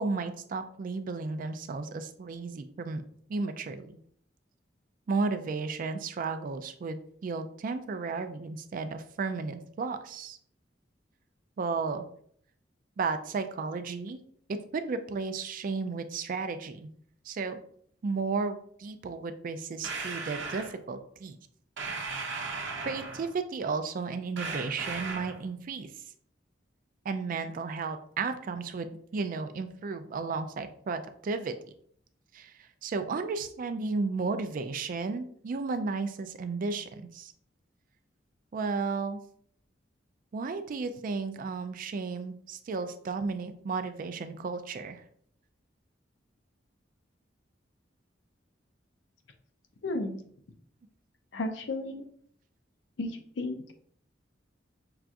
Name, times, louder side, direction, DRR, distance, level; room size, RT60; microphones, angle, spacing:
voice 1, 0.0-3.0 3.3-4.0 5.1-10.4 11.6-12.1 13.0-14.2 14.5-16.9 17.3-17.6 18.0-21.4 22.9-25.9 27.1-31.5 32.3-32.5 32.8-37.3 38.5-39.2 40.3-45.0, right 4 dB, 50° right, 9 dB, 0.3 m, -33 dB
sound 1, 19.8-20.7 21.8-23.3 24.4-25.4, right 4 dB, 70° right, 0.7 m, -36 dB
voice 2, 49.8-50.2 51.3-52.1 53.0-53.6, left 2 dB, 70° left, 6 dB, 0.5 m, -33 dB
5.6 x 2.4 x 2.5 m, 0.62 s
head